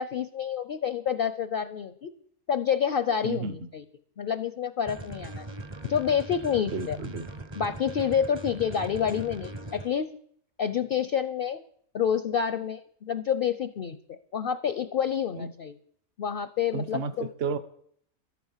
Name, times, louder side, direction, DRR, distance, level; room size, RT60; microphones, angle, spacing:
voice 1, 0.0-2.1 2.5-3.8 4.2-5.5 5.9-7.0 7.5-10.1 10.6-11.6 11.9-15.8 16.2-17.3, left 8 dB, 55° left, 13 dB, 0.6 m, -28 dB
voice 2, 3.2-3.5 6.7-7.3 15.4-15.5 16.7-17.6, right 4 dB, 50° right, 14 dB, 1.0 m, -32 dB
sound 1, 4.8-9.9, right 2 dB, 25° right, 0.7 m, -40 dB
12.0 x 9.3 x 7.3 m, 0.65 s
omnidirectional pair, 1.5 m